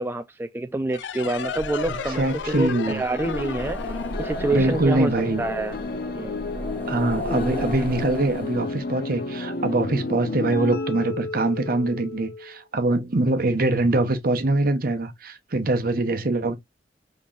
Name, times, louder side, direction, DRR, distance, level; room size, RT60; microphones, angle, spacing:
voice 1, 0.0-5.1 5.4-5.8 6.1-6.4, right 2 dB, 15° right, 0.3 m, -27 dB
sound 1, 0.9-6.1, left 6 dB, 80° left, 0.4 m, -34 dB
sound 2, 1.2-8.8, equal, 10° left, 0.9 m, -36 dB
voice 2, 1.9-3.0 4.5-5.4 6.9-16.6, right 2 dB, 55° right, 0.9 m, -23 dB
sound 3, 4.1-12.6, left 3 dB, 60° left, 0.9 m, -32 dB
5.6 x 3.8 x 2.5 m
head